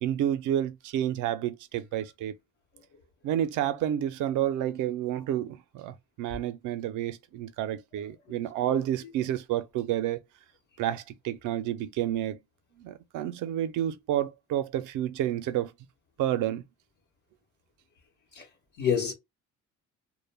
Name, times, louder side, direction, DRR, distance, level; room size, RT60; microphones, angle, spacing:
voice 1, 0.0-2.3 3.2-10.2 10.8-12.4 12.8-15.7 16.2-16.6, right 11 dB, 90° right, 0.5 m, -30 dB
voice 2, 8.0-8.8 18.3-18.5 18.8-19.1, left 7 dB, 80° left, 0.9 m, -31 dB
2.1 x 2.1 x 3.2 m
cardioid pair, 90°, 30 cm